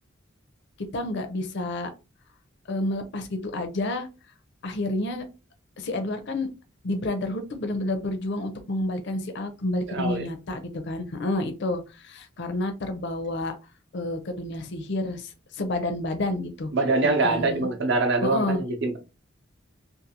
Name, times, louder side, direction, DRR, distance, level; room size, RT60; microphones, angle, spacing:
voice 1, 0.9-1.9 2.7-4.1 4.6-5.2 5.8-6.5 6.8-13.5 13.9-16.7 17.0-17.7 18.2-18.6, left 2 dB, 60° left, 0.5 m, -29 dB
voice 2, 9.9-10.3 16.7-19.0, right 3 dB, 60° right, 0.6 m, -24 dB
2.5 x 2.4 x 2.7 m
head